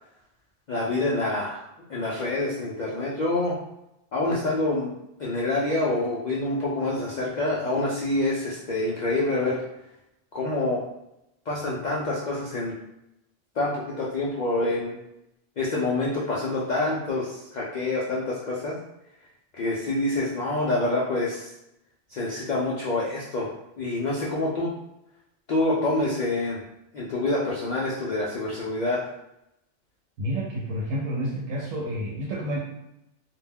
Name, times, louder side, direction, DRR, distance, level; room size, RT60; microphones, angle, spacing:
voice 1, 0.7-1.6 1.9-3.6 4.1-4.9 5.2-9.6 10.3-10.8 11.5-12.8 13.6-15.0 15.6-18.8 19.5-21.5 22.1-24.7 25.5-26.6 26.9-29.0, left 2 dB, 80° left, -5 dB, 0.4 m, -26 dB
voice 2, 30.2-32.6, equal, 85° right, -4 dB, 1.0 m, -29 dB
2.4 x 2.1 x 3.4 m, 0.86 s
omnidirectional pair, 1.3 m